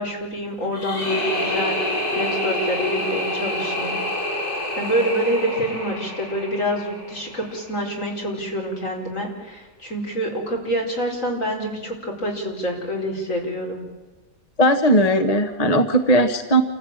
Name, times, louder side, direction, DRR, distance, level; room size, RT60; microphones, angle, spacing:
voice 1, 0.0-1.8 2.1-3.9 4.8-13.8, equal, 45° left, 0 dB, 4.8 m, -26 dB
sound 1, 0.7-7.7, left 1 dB, 90° left, 6.5 m, -27 dB
voice 2, 14.6-16.6, right 1 dB, 25° left, 7 dB, 1.0 m, -18 dB
28.0 x 15.0 x 8.7 m, 1.3 s
omnidirectional pair, 1.9 m